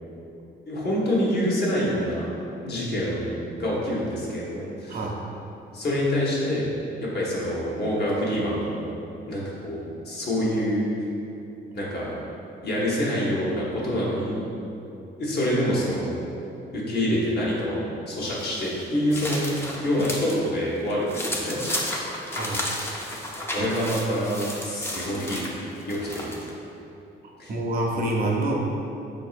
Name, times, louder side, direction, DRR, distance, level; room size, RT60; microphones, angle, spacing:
voice 1, 0.7-2.3 2.6-5.0 5.7-6.7 7.0-8.9 9.3-10.8 11.7-12.2 12.6-14.4 15.2-16.2 16.7-21.6 23.3-25.4 25.9-26.3 27.4-27.5, equal, 55° left, -6 dB, 0.9 m, -26 dB
sound 1, 18.2-20.4 20.8-26.5, left 1 dB, 10° left, 0.4 m, -33 dB
voice 2, 22.3-22.7 23.6-23.7 27.2-28.5, right 2 dB, 50° right, -2 dB, 0.5 m, -27 dB
4.0 x 2.6 x 2.4 m, 2.8 s
cardioid pair, 90°, 20 cm